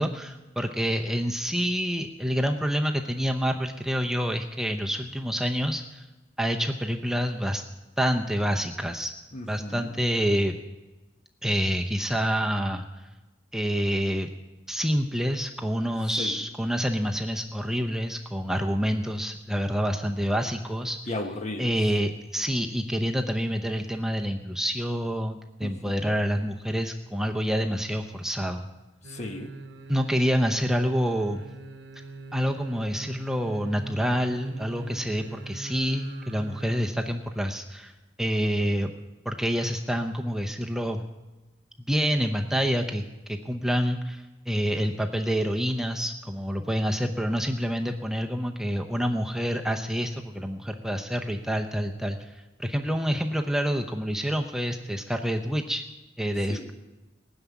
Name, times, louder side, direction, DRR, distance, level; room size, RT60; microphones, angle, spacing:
voice 1, 0.0-6.0 6.4-7.6 8.0-9.1 9.5-10.6 11.4-12.8 13.5-14.3 14.7-21.0 21.6-28.7 29.9-31.4 32.3-37.9 38.2-38.9 39.2-41.1 41.8-55.8 56.2-56.7, equal, 5° right, 3 dB, 0.7 m, -27 dB
voice 2, 9.3-9.9 16.2-16.4 21.1-21.7 25.6-26.1 29.0-29.5 56.5-56.7, left 2 dB, 40° left, 6 dB, 1.3 m, -35 dB
sound 1, 29.0-36.9 37.2-37.3, right 3 dB, 65° right, 0.9 m, -42 dB
19.0 x 7.1 x 9.4 m, 1.1 s
head